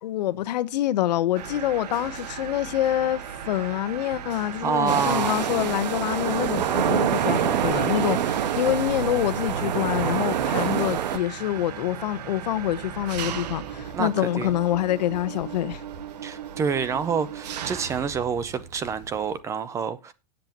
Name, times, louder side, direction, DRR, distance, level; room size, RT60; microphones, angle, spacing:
voice 1, 0.0-15.8, left 13 dB, 75° left, 1.1 m, -26 dB
Mechanisms, 1.4-19.4, right 9 dB, 70° right, 1.5 m, -37 dB
voice 2, 4.6-5.4 13.9-14.5 16.2-20.1, right 6 dB, 15° right, 0.6 m, -27 dB
sound 1, 4.9-11.2, right 9 dB, 90° right, 1.5 m, -25 dB
17.5 x 7.7 x 3.0 m
supercardioid pair, 165°, 21 cm